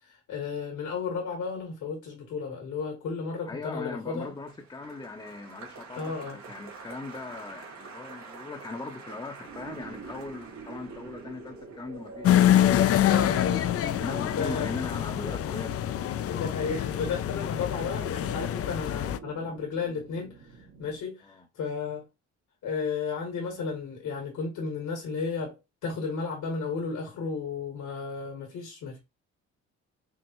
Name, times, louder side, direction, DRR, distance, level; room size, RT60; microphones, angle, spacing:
voice 1, 0.0-4.3 5.9-6.4 13.1-13.9 14.4-14.7 16.3-22.1 22.6-29.0, left 5 dB, 80° left, 2.0 m, -33 dB
voice 2, 3.5-12.3 14.0-15.8 21.2-21.5, left 3 dB, 15° left, 0.7 m, -39 dB
Applause, 3.8-14.2 14.5-15.1, right 4 dB, 70° right, 2.4 m, -48 dB
sound 1, 9.5-21.0, right 3 dB, 85° right, 2.0 m, -45 dB
sound 2, 12.2-19.2, left 11 dB, 50° left, 0.4 m, -25 dB
5.4 x 2.5 x 3.0 m
cardioid pair, 90°, 30 cm